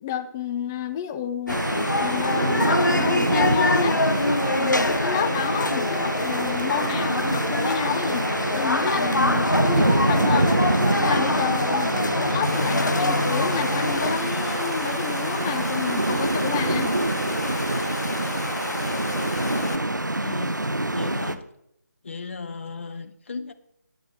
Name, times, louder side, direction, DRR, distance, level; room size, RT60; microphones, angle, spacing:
voice 1, 0.0-1.6 1.9-4.0 4.5-8.3 8.5-10.6 11.0-16.9, left 9 dB, 10° left, 0.4 m, -30 dB
sound 1, 1.5-14.2, left 2 dB, 85° left, 0.7 m, -25 dB
sound 2, 1.5-21.4, right 1 dB, 80° right, 0.9 m, -26 dB
Water, 12.4-19.8, left 2 dB, 65° left, 1.2 m, -32 dB
voice 2, 20.2-20.6 20.9-21.4 22.0-23.5, left 4 dB, 40° left, 0.8 m, -36 dB
10.5 x 9.1 x 4.2 m
figure-of-eight pair, 150°, 10 cm